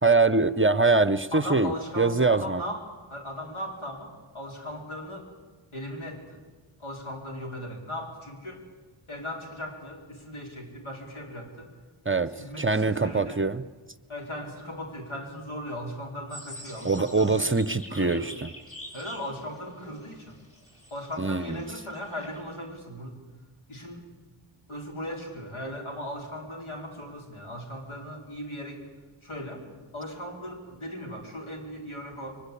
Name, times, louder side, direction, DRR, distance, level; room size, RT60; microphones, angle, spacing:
voice 1, 0.0-2.6 12.1-13.6 16.8-18.5 21.2-21.6, right 3 dB, 25° right, 14 dB, 0.7 m, -23 dB
voice 2, 1.3-2.8 3.1-5.3 5.7-6.4 6.8-8.6 9.1-11.7 12.3-13.4 14.1-17.5 17.9-18.3 18.9-20.4 20.9-23.1 23.7-24.1 24.7-28.8 29.2-29.6 29.9-32.3, equal, 80° left, 1 dB, 4.7 m, -38 dB
sound 1, 16.3-22.4, left 1 dB, 30° left, 6.4 m, -46 dB
23.0 x 20.5 x 8.5 m, 1.3 s
wide cardioid pair, 65°, 48 cm